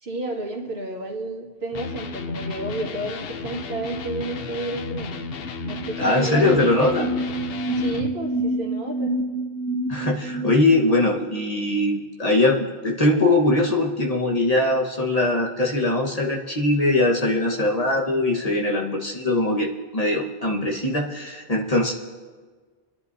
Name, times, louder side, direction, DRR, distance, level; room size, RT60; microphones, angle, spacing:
voice 1, 0.0-5.3 5.6-6.8 7.8-9.2, right 2 dB, 80° right, -2 dB, 2.2 m, -31 dB
Electric guitar, 1.7-8.1, left 5 dB, 70° left, 0.9 m, -34 dB
sound 1, 5.2-5.3 5.5-11.2, right 1 dB, 5° left, 1.9 m, -28 dB
voice 2, 6.0-7.1 9.9-21.9, left 2 dB, 40° left, -2 dB, 1.4 m, -21 dB
29.0 x 10.5 x 2.7 m, 1.5 s
omnidirectional pair, 1.0 m